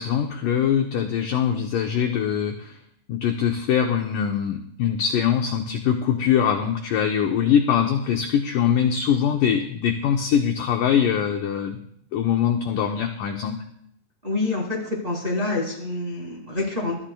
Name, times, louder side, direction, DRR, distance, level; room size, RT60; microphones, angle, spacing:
voice 1, 0.0-2.8 3.1-11.8 12.1-13.6, left 8 dB, 85° left, 3 dB, 1.9 m, -22 dB
voice 2, 14.2-17.0, left 2 dB, 20° right, -3 dB, 1.9 m, -27 dB
21.0 x 13.0 x 2.3 m, 0.69 s
omnidirectional pair, 4.8 m